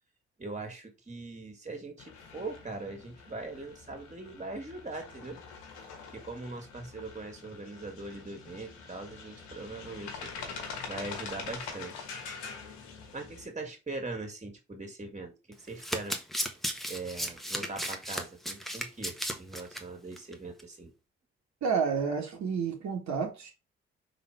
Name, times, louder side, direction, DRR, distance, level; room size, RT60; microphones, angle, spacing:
voice 1, 0.4-5.4 6.1-10.3 10.8-12.1 13.1-16.2 16.9-20.9, right 3 dB, 20° right, 2.5 m, -41 dB
sound 1, 2.0-13.5, left 5 dB, 75° left, 1.4 m, -44 dB
Domestic sounds home sounds, 15.5-19.8 20.2-20.3 20.6-20.7, equal, ahead, 1.4 m, -35 dB
voice 2, 21.6-23.5, right 6 dB, 55° right, 2.0 m, -30 dB
5.6 x 3.8 x 4.5 m
figure-of-eight pair, 40°, 33 cm